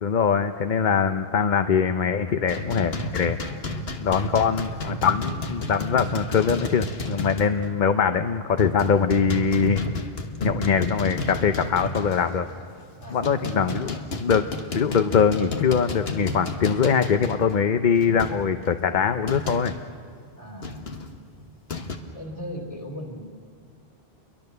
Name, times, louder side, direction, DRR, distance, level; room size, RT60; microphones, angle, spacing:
voice 1, 0.0-3.4 4.0-9.8 10.4-12.5 13.1-14.4 14.7-19.7, left 6 dB, 50° left, 8 dB, 0.8 m, -22 dB
sound 1, 2.5-7.7 8.0-8.1 8.6-12.6 13.0-19.9 20.6-22.0, left 2 dB, 70° left, 1.7 m, -32 dB
voice 2, 13.0-13.9 20.4-20.7 22.1-23.2, equal, 30° left, 1 dB, 4.0 m, -37 dB
29.0 x 23.0 x 6.8 m, 2.2 s
omnidirectional pair, 1.1 m